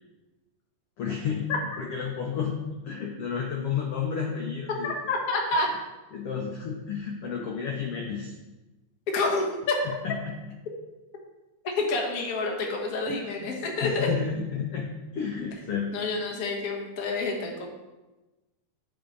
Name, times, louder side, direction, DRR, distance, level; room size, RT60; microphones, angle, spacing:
voice 1, 1.0-1.5 1.8-4.9 6.1-8.3 9.8-10.4 13.1-13.5 13.8-15.9, left 7 dB, 80° left, 0 dB, 1.3 m, -31 dB
voice 2, 4.8-5.7 9.1-9.8 11.8-14.1 15.9-17.7, left 3 dB, 65° left, 1 dB, 0.8 m, -28 dB
10.5 x 4.9 x 3.9 m, 1.1 s
omnidirectional pair, 3.6 m